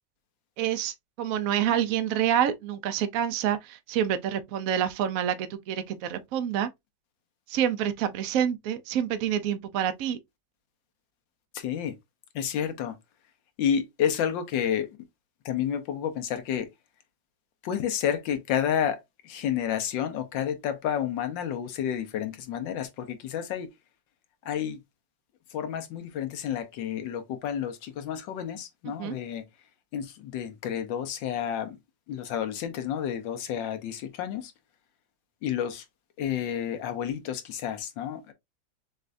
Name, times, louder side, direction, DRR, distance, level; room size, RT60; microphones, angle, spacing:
voice 1, 0.6-6.7 7.5-10.2 28.9-29.2, right 9 dB, 75° right, 0.7 m, -27 dB
voice 2, 11.5-11.9 12.3-12.9 13.6-14.9 15.4-16.7 17.6-19.0 19.2-23.7 24.4-24.8 25.5-29.4 29.9-31.8 32.1-34.5 35.4-35.8 36.2-38.3, left 9 dB, 75° left, 1.5 m, -30 dB
6.5 x 2.4 x 2.5 m
omnidirectional pair, 2.0 m